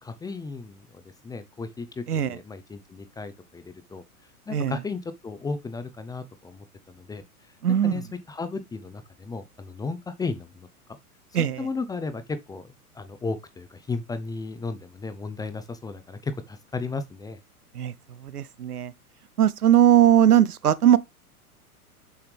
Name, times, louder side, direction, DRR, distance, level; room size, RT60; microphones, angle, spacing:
voice 1, 0.0-4.0 4.5-7.2 7.5-8.0 8.3-10.7 11.4-17.4, left 4 dB, 10° left, 0.6 m, -35 dB
voice 2, 7.6-7.9 11.3-11.6 17.7-17.9 18.2-18.9 19.4-21.0, right 11 dB, 75° right, 0.8 m, -19 dB
7.4 x 5.7 x 3.3 m
figure-of-eight pair, 100°, 45 cm